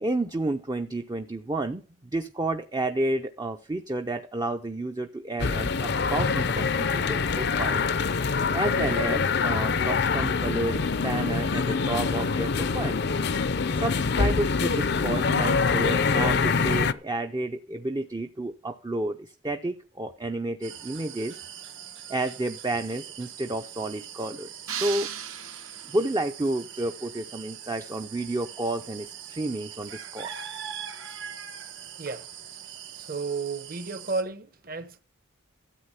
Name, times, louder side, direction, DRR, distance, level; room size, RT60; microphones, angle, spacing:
voice 1, 0.0-7.9 8.5-13.0 13.7-21.4 22.1-25.1 25.8-30.3, right 2 dB, 20° right, 0.5 m, -31 dB
sound 1, 5.4-16.9, left 5 dB, 50° left, 0.5 m, -25 dB
sound 2, 20.6-34.2, right 9 dB, 65° right, 1.6 m, -42 dB
sound 3, 24.7-26.2, right 8 dB, 80° right, 1.9 m, -36 dB
voice 2, 33.0-35.0, right 4 dB, 45° right, 1.0 m, -32 dB
13.0 x 8.2 x 5.7 m
head